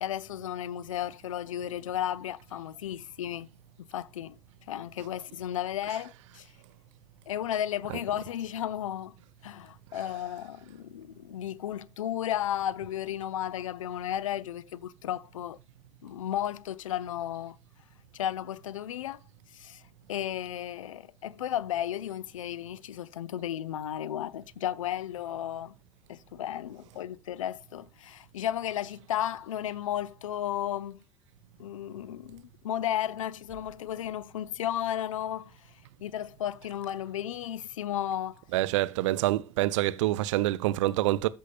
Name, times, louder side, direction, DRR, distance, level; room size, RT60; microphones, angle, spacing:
voice 1, 0.0-3.5 3.8-4.4 4.7-6.5 7.3-9.2 9.4-15.6 16.0-17.6 18.1-19.2 19.5-19.8 20.1-25.7 26.1-31.0 31.6-35.5 36.0-38.4, left 11 dB, 70° left, 0.5 m, -34 dB
voice 2, 38.5-41.3, right 16 dB, 65° right, 0.5 m, -26 dB
14.0 x 5.5 x 2.4 m
figure-of-eight pair, 65°, 17 cm